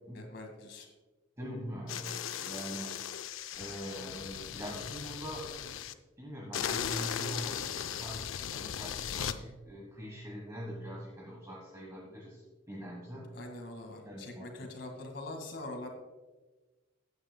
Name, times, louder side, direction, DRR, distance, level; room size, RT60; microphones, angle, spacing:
voice 1, 0.1-0.9 13.3-15.9, left 2 dB, 60° left, 3 dB, 1.9 m, -43 dB
voice 2, 1.4-3.0 3.5-5.6 6.2-13.3 14.0-14.7, equal, 15° right, -3 dB, 1.3 m, -43 dB
sound 1, 1.9-5.9 6.5-9.4, left 8 dB, 90° left, 0.5 m, -37 dB
15.0 x 9.5 x 2.2 m, 1.2 s
head